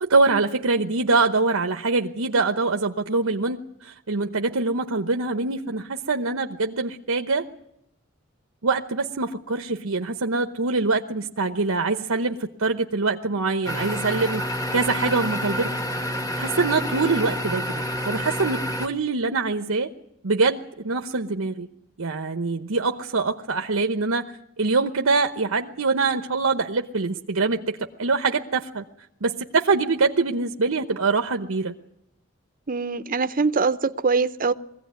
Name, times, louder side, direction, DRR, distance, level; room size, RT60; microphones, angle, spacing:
voice 1, 0.0-7.5 8.6-14.4 14.7-15.7 16.4-17.7 18.0-19.9 20.2-21.7 22.0-28.8 29.2-31.7, right 3 dB, 90° right, 5 dB, 1.0 m, -24 dB
sound 1, 13.6-18.9, equal, 15° left, 1.4 m, -28 dB
voice 2, 32.7-34.5, right 4 dB, 40° right, 11 dB, 0.8 m, -23 dB
22.0 x 16.5 x 9.5 m, 0.83 s
head